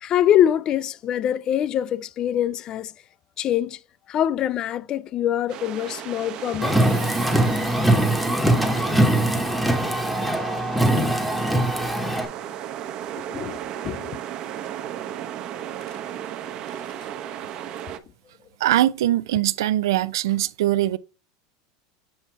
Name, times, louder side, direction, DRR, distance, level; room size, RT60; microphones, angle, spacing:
voice 1, 0.0-2.9 3.4-3.8 4.1-6.8 8.5-8.7 13.2-13.6 13.8-14.1 17.3-17.4, left 10 dB, 35° left, 0.3 m, -24 dB
sound 1, 5.5-18.0, right 10 dB, 40° right, 0.7 m, -35 dB
Car, 6.6-12.3, right 1 dB, ahead, 0.9 m, -21 dB
voice 2, 18.6-21.0, right 14 dB, 85° right, 0.4 m, -21 dB
7.7 x 2.7 x 4.5 m
supercardioid pair, 140°, 2 cm